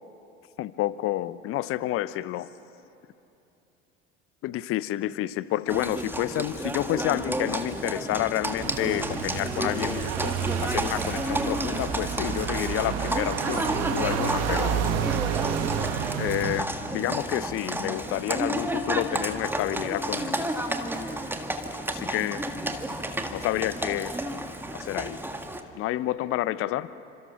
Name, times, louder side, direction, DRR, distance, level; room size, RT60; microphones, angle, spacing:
voice 1, 0.6-2.5 4.4-15.1 16.2-20.5 21.9-22.4 23.3-24.1 24.7-25.2 25.7-26.9, left 14 dB, 40° left, 17 dB, 0.8 m, -29 dB
Livestock farm animals working animals, 5.7-25.6, right 1 dB, 5° right, 1.7 m, -31 dB
sound 1, 8.6-16.6, right 10 dB, 45° right, 1.3 m, -30 dB
29.5 x 26.0 x 5.8 m, 2.8 s
figure-of-eight pair, 70°, 34 cm